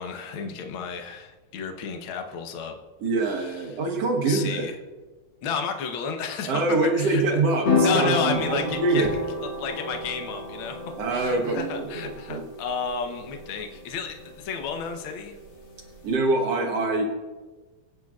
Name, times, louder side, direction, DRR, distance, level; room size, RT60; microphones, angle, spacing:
voice 1, 0.0-2.8 3.2-3.8 4.2-4.8 5.4-7.4 7.8-9.1 9.4-15.4, left 6 dB, 85° left, 5 dB, 1.1 m, -32 dB
voice 2, 3.0-4.7 6.5-9.1 11.0-12.4 16.0-17.0, right 3 dB, 60° right, 1 dB, 1.8 m, -24 dB
sound 1, 7.7-16.1, left 3 dB, 45° left, 2.0 m, -31 dB
23.5 x 9.0 x 2.4 m, 1.3 s
omnidirectional pair, 3.7 m